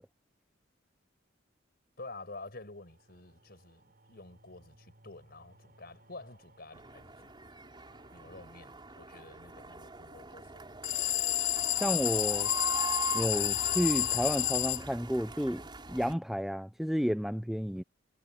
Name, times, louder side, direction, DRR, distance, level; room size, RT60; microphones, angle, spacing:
voice 1, 2.0-7.3 8.1-11.1, left 2 dB, 55° left, 5.7 m, -49 dB
sound 1, 2.6-9.6, right 1 dB, 50° right, 7.6 m, -63 dB
sound 2, 6.7-16.1, right 3 dB, 25° right, 4.7 m, -42 dB
sound 3, 10.8-14.8, left 17 dB, 80° left, 0.4 m, -30 dB
voice 2, 11.8-12.5 13.1-15.6 15.9-17.8, equal, ahead, 0.6 m, -31 dB
head